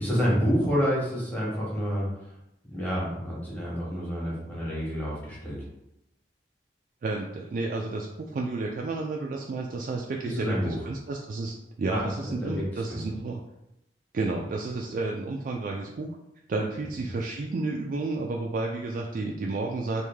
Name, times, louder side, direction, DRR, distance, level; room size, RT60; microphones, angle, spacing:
voice 1, 0.0-2.1 2.7-5.7 10.2-10.8 11.9-13.0, equal, 10° left, -6 dB, 1.1 m, -28 dB
voice 2, 7.0-13.4 14.1-16.1 16.5-20.0, right 3 dB, 50° right, 0 dB, 0.3 m, -31 dB
3.1 x 2.6 x 3.4 m, 0.85 s
head